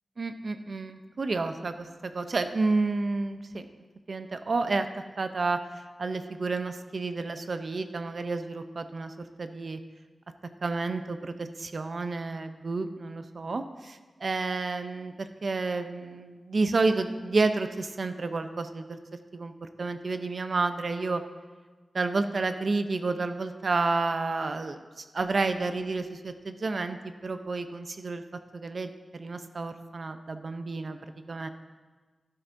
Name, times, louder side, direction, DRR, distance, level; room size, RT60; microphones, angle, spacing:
voice 1, 0.2-3.7 4.1-4.9 5.2-5.6 6.0-9.1 9.4-9.8 10.6-19.0 19.3-21.2 21.9-27.0 27.2-28.2 28.5-31.0 31.3-31.5, right 3 dB, 60° right, 8 dB, 0.6 m, -30 dB
11.5 x 11.5 x 2.6 m, 1.4 s
wide cardioid pair, 75°, 0 cm